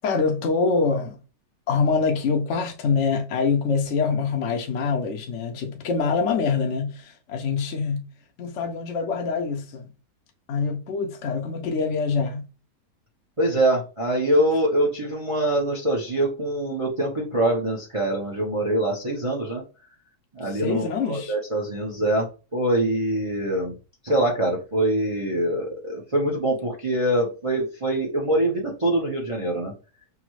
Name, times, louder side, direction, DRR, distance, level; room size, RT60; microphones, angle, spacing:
voice 1, 0.0-1.2 1.7-8.1 8.4-9.9 10.5-12.5 20.4-21.3, left 5 dB, 60° left, 0.8 m, -25 dB
voice 2, 13.4-19.6 20.3-22.3 22.5-23.7 24.0-29.7, right 1 dB, 45° right, 0.4 m, -24 dB
5.9 x 2.1 x 3.0 m
omnidirectional pair, 1.8 m